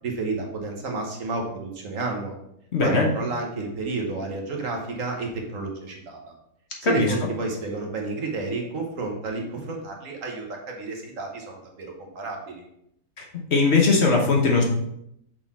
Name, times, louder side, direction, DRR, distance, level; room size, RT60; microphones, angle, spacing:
voice 1, 0.0-2.4 2.8-6.3 6.8-12.6, right 3 dB, 65° right, 1 dB, 1.4 m, -31 dB
voice 2, 2.7-3.1 6.8-7.1 13.2-13.3 13.5-14.6, left 4 dB, 50° left, 0 dB, 1.2 m, -19 dB
6.1 x 3.9 x 4.1 m, 0.76 s
omnidirectional pair, 1.6 m